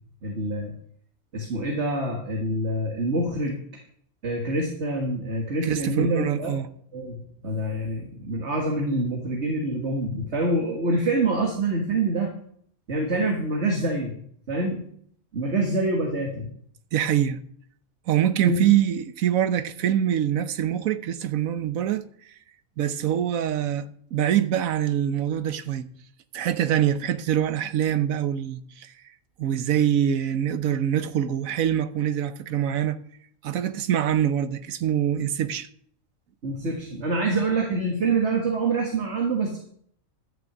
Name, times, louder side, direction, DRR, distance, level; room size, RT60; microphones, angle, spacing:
voice 1, 0.2-0.7 1.3-3.6 4.2-6.5 6.9-12.3 12.9-14.1 14.5-14.9 15.3-16.5 18.4-18.7 36.4-39.6, right 2 dB, 55° right, 2.0 m, -26 dB
voice 2, 5.6-6.7 16.9-17.4 18.1-22.0 22.8-25.9 26.3-28.9 29.4-33.0 33.4-35.7, right 10 dB, 80° right, 1.2 m, -24 dB
12.0 x 6.1 x 7.9 m
omnidirectional pair, 1.4 m